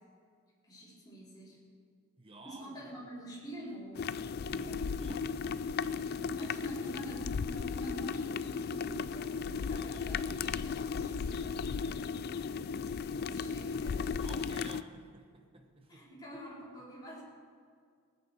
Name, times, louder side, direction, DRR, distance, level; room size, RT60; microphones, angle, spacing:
voice 1, 0.6-1.6 2.4-4.1 4.5-5.6 6.0-14.3 15.9-17.2, equal, 20° left, -8 dB, 4.4 m, -47 dB
voice 2, 2.2-3.1 4.3-5.6 5.9-6.0 6.8-7.0 14.2-16.1, right 2 dB, 25° right, 4 dB, 1.2 m, -52 dB
sound 1, 3.9-14.8, left 5 dB, 45° left, 0.3 m, -35 dB
18.0 x 9.9 x 6.5 m, 2.1 s
head